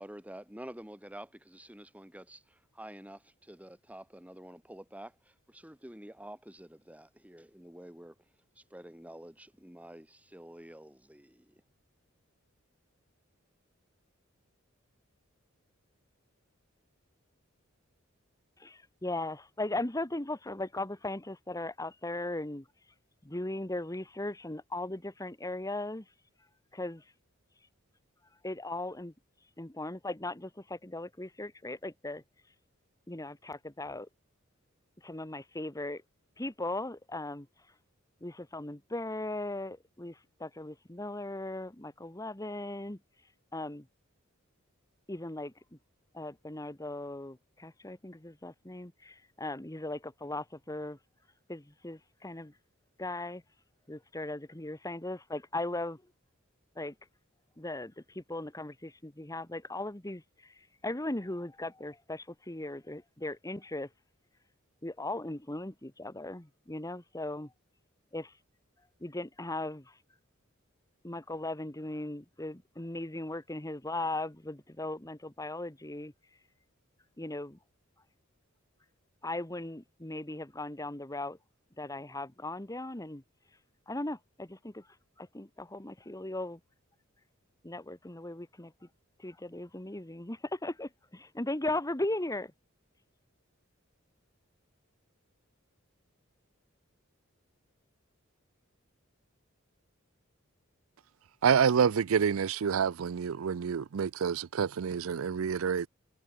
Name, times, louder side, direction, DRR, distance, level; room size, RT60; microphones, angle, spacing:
voice 1, 0.0-8.1 8.6-11.6, right 1 dB, 5° right, 3.2 m, -49 dB
voice 2, 18.6-22.7 23.2-26.1 26.7-27.0 28.4-29.1 29.6-32.2 33.1-34.1 35.0-36.0 36.4-37.5 38.2-43.0 43.5-43.9 45.1-45.8 46.1-51.0 51.5-52.5 53.0-53.4 53.9-56.0 56.8-56.9 57.6-63.9 64.8-67.5 68.1-68.3 69.0-70.0 71.0-76.1 77.2-77.6 79.2-81.4 81.8-83.2 83.9-84.9 85.2-86.6 87.6-88.7 89.2-92.5, left 2 dB, 15° left, 1.7 m, -38 dB
voice 3, 101.4-105.9, right 7 dB, 85° right, 0.5 m, -27 dB
head